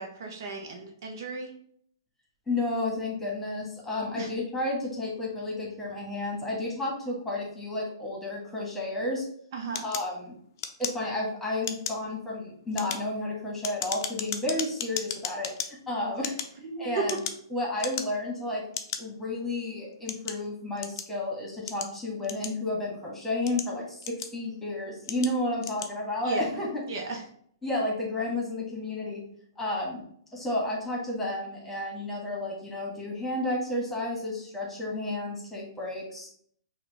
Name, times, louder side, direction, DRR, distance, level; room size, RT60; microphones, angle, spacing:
voice 1, 0.0-1.5 4.1-4.3 9.5-9.9 16.6-17.0 26.2-26.6 26.9-27.2, right 5 dB, 55° right, 2 dB, 0.8 m, -35 dB
voice 2, 2.5-9.2 9.8-10.3 10.8-16.3 16.8-17.2 17.5-18.6 19.0-26.8 27.6-29.2 29.6-30.0 30.3-36.3, left 2 dB, 5° left, -3 dB, 1.4 m, -32 dB
sound 1, 9.7-11.3 11.6-12.1 12.6-15.7 16.1-17.5 17.8-18.3 18.7-19.0 19.7-21.1 21.7-22.8 23.3-24.5 25.0-25.3 25.6-25.9, left 8 dB, 50° left, 0.5 m, -35 dB
5.6 x 2.3 x 3.4 m, 0.63 s
hypercardioid pair, 130°, 2 cm